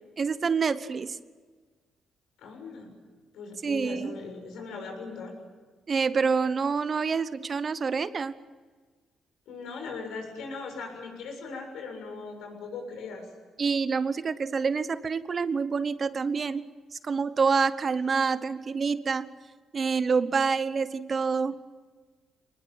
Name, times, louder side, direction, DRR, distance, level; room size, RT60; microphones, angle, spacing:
voice 1, 0.2-1.2 3.6-4.1 5.9-8.3 13.6-16.7 16.9-19.3 19.7-21.6, right 5 dB, 40° right, 14 dB, 1.0 m, -27 dB
voice 2, 2.4-2.9 3.3-5.3 9.5-13.3, left 4 dB, 85° left, 3 dB, 7.0 m, -39 dB
24.0 x 20.5 x 9.1 m, 1.4 s
cardioid pair, 90°, 0 cm